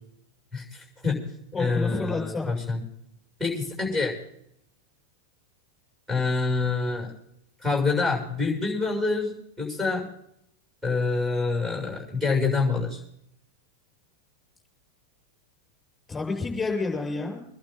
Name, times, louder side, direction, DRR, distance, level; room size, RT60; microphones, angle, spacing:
voice 1, 0.5-1.3 1.6-2.8 3.4-4.2 6.1-7.1 7.6-10.1 10.8-13.0, left 4 dB, 10° right, -2 dB, 6.7 m, -26 dB
voice 2, 1.5-2.5 16.1-17.4, left 3 dB, 10° left, 0 dB, 7.0 m, -29 dB
24.5 x 11.5 x 3.9 m, 0.73 s
figure-of-eight pair, 90°, 0 cm